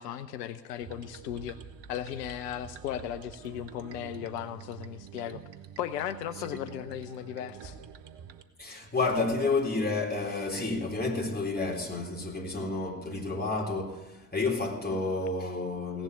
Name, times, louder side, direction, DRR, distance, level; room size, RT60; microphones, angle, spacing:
voice 1, 0.0-1.6 1.9-5.4 5.8-7.8, left 10 dB, 85° left, 0.6 m, -36 dB
sound 1, 0.8-8.4, right 8 dB, 60° right, 1.2 m, -47 dB
voice 2, 8.6-16.0, left 3 dB, 20° left, 3.7 m, -30 dB
16.5 x 7.4 x 9.8 m
figure-of-eight pair, 40°, 47 cm